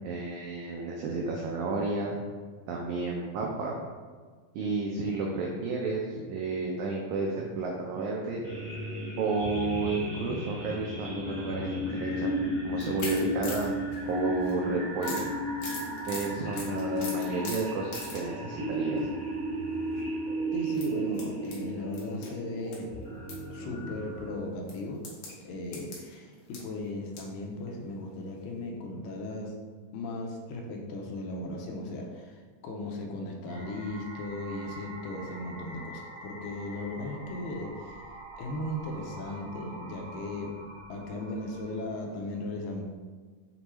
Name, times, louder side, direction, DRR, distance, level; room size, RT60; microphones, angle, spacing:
voice 1, 0.0-2.2 2.7-3.8 4.5-8.4 9.2-13.7 14.1-15.3 16.1-19.0, right 3 dB, 90° right, -1 dB, 1.7 m, -32 dB
sound 1, 8.4-24.4, equal, 50° left, 0.8 m, -34 dB
sound 2, 12.8-14.6 15.0-18.3 18.7-19.0 19.8-20.0 20.7-22.8 23.0-23.4 23.8-23.9 24.7-27.4 27.8-27.9 28.3-28.4, left 3 dB, 70° left, 2.0 m, -41 dB
voice 2, 20.5-22.9 23.5-25.1 25.4-29.6 29.9-37.9 38.4-40.6 40.9-42.8, left 2 dB, 85° left, 0 dB, 2.3 m, -37 dB
sound 3, 33.5-41.9, right 1 dB, 75° right, 1.6 m, -46 dB
6.7 x 2.2 x 3.0 m, 1.5 s
omnidirectional pair, 4.0 m